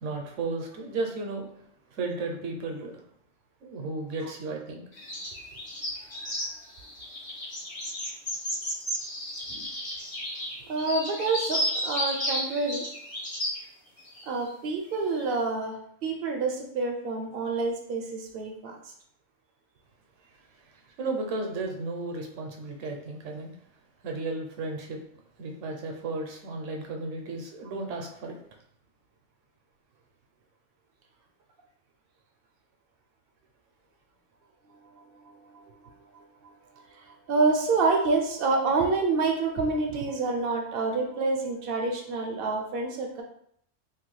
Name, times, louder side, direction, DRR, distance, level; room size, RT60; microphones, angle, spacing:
voice 1, 0.0-1.6 1.9-2.9 3.6-4.8 21.0-23.5 24.0-25.0 25.4-28.4, right 3 dB, 75° right, 2 dB, 0.9 m, -34 dB
sound 1, 4.9-13.6 14.0-14.5 15.1-15.4, equal, 35° left, 0.7 m, -33 dB
voice 2, 10.7-12.9 14.3-18.8 34.9-36.5 36.9-43.2, right 3 dB, 60° right, 2 dB, 0.6 m, -28 dB
3.0 x 2.3 x 3.1 m, 0.68 s
omnidirectional pair, 1.3 m